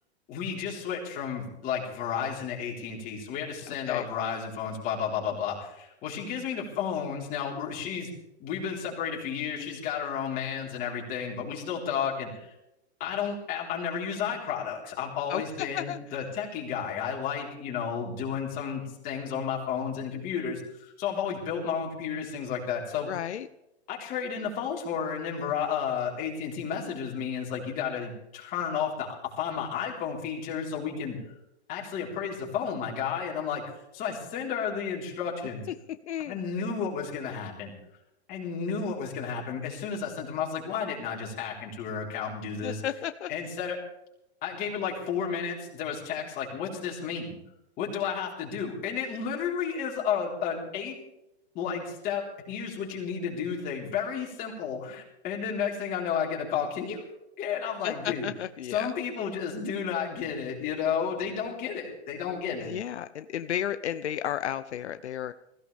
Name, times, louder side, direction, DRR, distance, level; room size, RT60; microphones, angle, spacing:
voice 1, 0.3-8.1 8.4-12.5 13.0-23.1 23.9-31.2 31.7-33.6 33.9-35.6 36.3-37.7 38.3-42.8 43.3-43.8 44.4-47.4 47.8-51.0 51.5-57.0 57.4-58.3 58.7-62.7, left 7 dB, 25° left, -3 dB, 4.3 m, -32 dB
voice 2, 3.7-4.1 9.6-9.8 15.3-16.0 23.0-23.5 36.1-36.4 42.6-43.3 57.8-58.9 62.6-65.3, left 10 dB, 85° left, 11 dB, 0.8 m, -33 dB
20.5 x 16.5 x 3.5 m, 0.86 s
hypercardioid pair, 155°, 33 cm